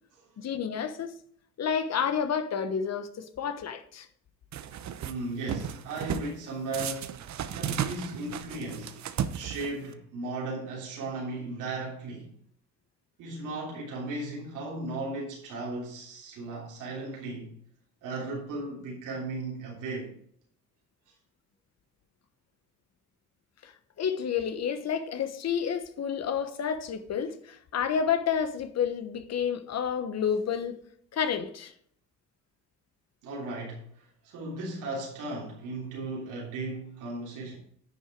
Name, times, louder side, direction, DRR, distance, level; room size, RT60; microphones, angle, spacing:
voice 1, 0.4-1.1 1.6-4.1 23.6-23.7 24.0-30.8 31.1-31.7, left 7 dB, 60° left, 1.2 m, -30 dB
sound 1, 4.5-5.1 5.5-6.3 6.7-9.9, right 9 dB, 65° right, 0.9 m, -34 dB
voice 2, 5.0-7.1 7.5-9.1 9.3-12.3 13.2-17.5 18.0-20.2 33.2-37.6, right 2 dB, 90° right, 3.3 m, -36 dB
10.0 x 6.4 x 4.7 m
cardioid pair, 90°, 30 cm